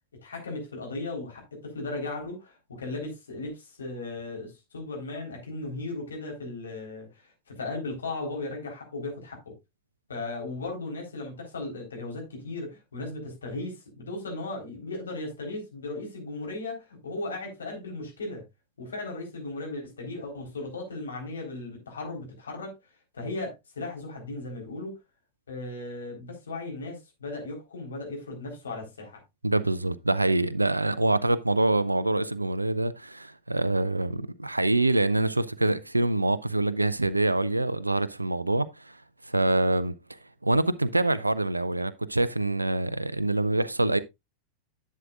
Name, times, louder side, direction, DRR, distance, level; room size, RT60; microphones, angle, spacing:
voice 1, 0.2-9.6 10.1-18.4 18.8-22.7 23.1-25.0 25.5-29.2, left 2 dB, 70° left, 3.8 m, -36 dB
voice 2, 29.4-39.0 39.2-39.9 40.4-44.0, right 2 dB, 85° right, 0.4 m, -25 dB
11.0 x 7.4 x 2.4 m
figure-of-eight pair, 90°, 0 cm